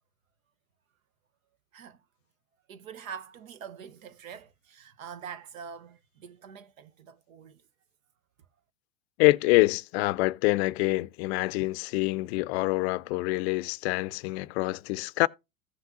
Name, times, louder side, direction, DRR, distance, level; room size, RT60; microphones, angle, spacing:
voice 1, 2.7-7.6, right 7 dB, 80° right, 0.9 m, -44 dB
voice 2, 9.2-15.3, left 20 dB, 55° left, 0.4 m, -26 dB
15.0 x 5.8 x 2.5 m
hypercardioid pair, 90°, 40 cm